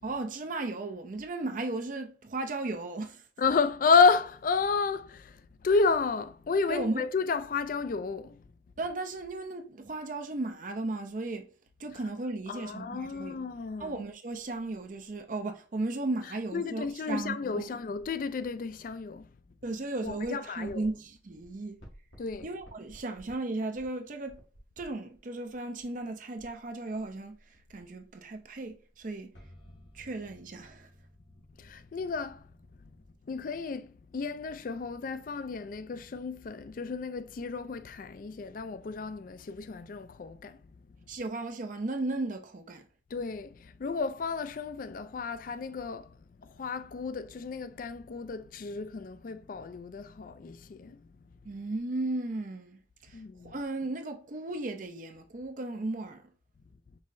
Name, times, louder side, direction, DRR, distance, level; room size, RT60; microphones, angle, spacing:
voice 1, 0.0-3.3 6.7-7.1 8.8-11.5 11.8-13.4 13.8-17.8 19.6-21.8 22.4-24.4 24.8-29.3 29.9-30.9 41.1-42.9 51.4-56.3, right 2 dB, 45° right, 0.5 m, -35 dB
voice 2, 3.4-8.4 12.5-14.0 16.5-19.3 20.0-20.9 22.2-22.5 31.6-32.5 33.3-40.6 43.1-51.0 53.1-53.6, left 4 dB, 45° left, 0.3 m, -31 dB
sound 1, 14.4-15.2 17.9-18.3 19.4-21.1 21.4-21.5 21.8-23.3 23.7-25.2 25.5-33.2, equal, 90° left, 2.0 m, -56 dB
5.4 x 3.2 x 2.5 m
head